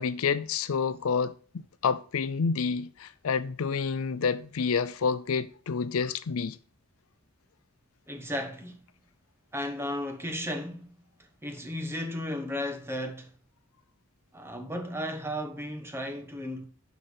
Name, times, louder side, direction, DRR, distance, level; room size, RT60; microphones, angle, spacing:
voice 1, 0.0-1.3 1.8-6.6, left 5 dB, 75° left, 0.5 m, -28 dB
voice 2, 8.1-8.8 9.5-10.9 11.4-13.3 14.3-16.6, left 1 dB, 10° right, 1.0 m, -34 dB
11.0 x 4.1 x 3.4 m
head